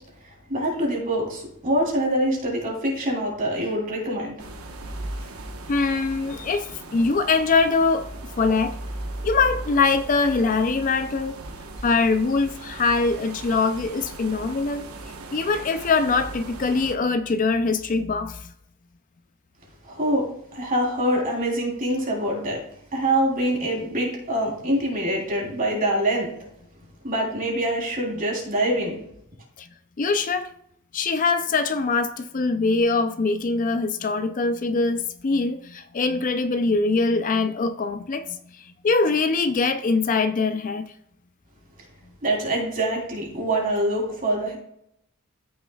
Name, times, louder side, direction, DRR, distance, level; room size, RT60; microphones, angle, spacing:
voice 1, 0.2-4.4 19.8-22.6 22.9-26.3 27.0-29.0 42.2-44.6, right 1 dB, 40° right, 3.4 m, -25 dB
sound 1, 4.4-16.9, right 2 dB, 90° right, 1.1 m, -37 dB
voice 2, 5.7-8.1 8.4-8.8 9.2-11.4 11.8-14.9 15.3-18.5 29.6-29.7 30.0-30.5 30.9-40.9, left 4 dB, 35° left, 0.4 m, -23 dB
14.0 x 6.4 x 2.3 m
head